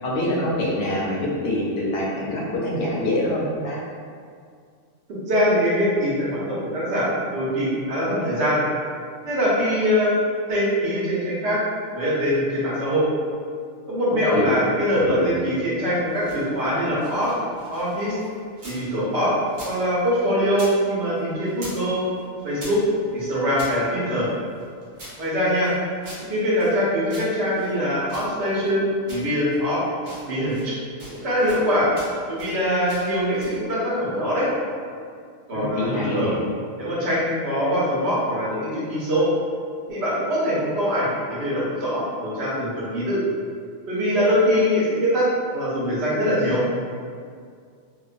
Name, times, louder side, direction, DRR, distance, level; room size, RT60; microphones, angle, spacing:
voice 1, 0.0-3.8 14.3-14.6 15.0-15.3 35.5-36.4, left 1 dB, 65° left, -4 dB, 0.7 m, -25 dB
voice 2, 5.3-8.6 9.2-10.1 10.5-11.6 11.9-13.0 13.9-17.3 17.7-18.1 18.6-19.4 19.6-22.1 22.4-22.8 23.1-24.3 25.2-25.7 26.3-29.8 30.2-30.7 31.0-31.9 32.3-34.5 35.5-36.3 36.8-39.3 39.9-43.2 43.9-46.6, equal, 65° right, -7 dB, 1.0 m, -23 dB
sound 1, 16.0-18.8 19.1-20.8 21.0-21.9 22.1-23.8 24.3-26.8 27.1-28.7 29.1-29.7 30.0-30.7 31.0-31.7 31.9-32.6 32.9-33.6, equal, 45° right, 0.7 m, -43 dB
2.5 x 2.2 x 2.4 m, 2.1 s
omnidirectional pair, 1.3 m